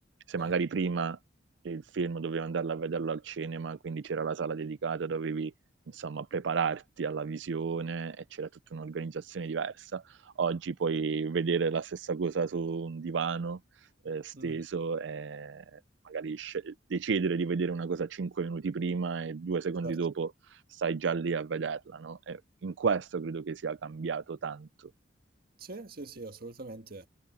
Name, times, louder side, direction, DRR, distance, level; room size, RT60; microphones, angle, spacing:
voice 1, 0.3-1.2 1.6-5.5 5.9-10.0 10.4-13.6 14.0-15.8 16.1-20.3 20.7-24.7, right 5 dB, 75° right, 0.5 m, -32 dB
voice 2, 25.6-27.1, right 2 dB, 55° right, 1.6 m, -43 dB
head